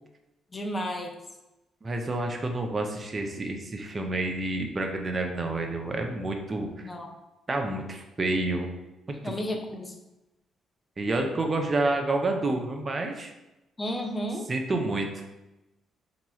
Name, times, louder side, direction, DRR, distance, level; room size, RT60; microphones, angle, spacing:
voice 1, 0.5-1.2 6.8-7.1 9.2-10.0 13.8-14.4, equal, 25° left, 3 dB, 0.5 m, -32 dB
voice 2, 1.8-6.9 7.5-8.7 9.2-9.3 11.0-13.3 14.5-15.2, right 2 dB, 30° right, 3 dB, 0.5 m, -29 dB
2.9 x 2.3 x 4.1 m, 0.98 s
cardioid pair, 90°, 0 cm